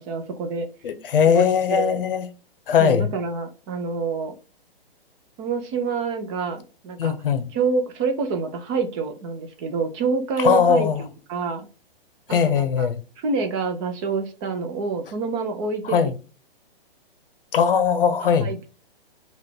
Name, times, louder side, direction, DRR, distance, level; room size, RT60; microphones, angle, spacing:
voice 1, 0.0-0.7 1.3-2.0 2.8-4.3 5.4-7.1 7.5-11.7 12.3-12.9 13.2-16.0 18.2-18.7, right 4 dB, 30° right, 0.8 m, -27 dB
voice 2, 0.8-2.3 2.7-3.1 7.0-7.5 10.4-11.0 12.3-13.0 15.8-16.1 17.5-18.5, left 7 dB, 65° left, 0.8 m, -20 dB
5.4 x 2.5 x 3.7 m
hypercardioid pair, 130°, 30 cm